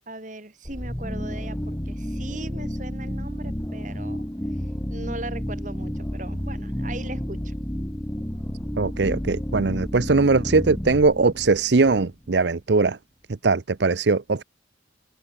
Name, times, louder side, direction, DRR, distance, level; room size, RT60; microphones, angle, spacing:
voice 1, 0.0-4.2 4.9-7.6, right 2 dB, 40° right, 4.4 m, -39 dB
sound 1, 0.6-12.4, equal, 15° left, 1.8 m, -31 dB
voice 2, 8.8-13.0 13.4-14.4, right 3 dB, 65° right, 0.7 m, -20 dB
head